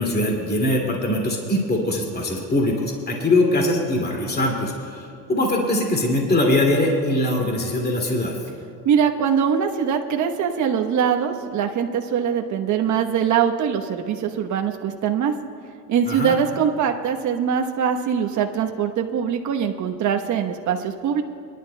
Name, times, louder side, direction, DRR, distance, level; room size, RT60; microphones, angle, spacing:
voice 1, 0.0-8.4 16.1-16.3, left 1 dB, 20° left, 0 dB, 2.4 m, -22 dB
voice 2, 8.8-15.3 15.9-21.2, right 7 dB, 35° right, 4 dB, 1.1 m, -22 dB
25.5 x 11.0 x 2.2 m, 2.4 s
hypercardioid pair, 95°, 48 cm